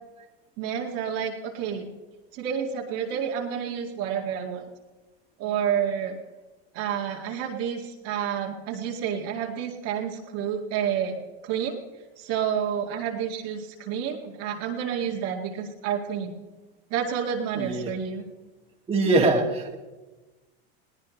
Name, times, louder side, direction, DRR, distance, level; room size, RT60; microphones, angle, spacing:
voice 1, 0.6-1.9 2.3-4.7 5.4-6.2 6.7-11.2 11.4-11.8 12.2-16.3 16.9-18.2, right 8 dB, 50° right, 1 dB, 2.1 m, -29 dB
voice 2, 17.6-17.9 18.9-19.8, right 2 dB, 20° right, 0 dB, 2.3 m, -22 dB
21.5 x 17.5 x 3.2 m, 1.2 s
supercardioid pair, 130°, 32 cm